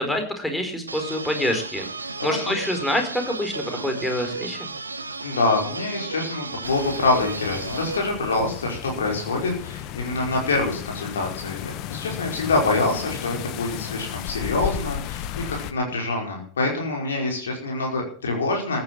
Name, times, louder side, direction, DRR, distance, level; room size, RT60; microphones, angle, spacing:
voice 1, 0.0-1.9 2.2-4.7, left 1 dB, 5° left, 4 dB, 4.6 m, -26 dB
sound 1, 0.9-8.0, right 3 dB, 80° right, 1.5 m, -34 dB
voice 2, 5.2-11.6 11.9-18.8, left 3 dB, 65° left, 0 dB, 5.0 m, -25 dB
sound 2, 6.6-15.7, left 10 dB, 40° left, 1.3 m, -34 dB
14.5 x 10.5 x 7.5 m, 0.43 s
figure-of-eight pair, 90°, 0 cm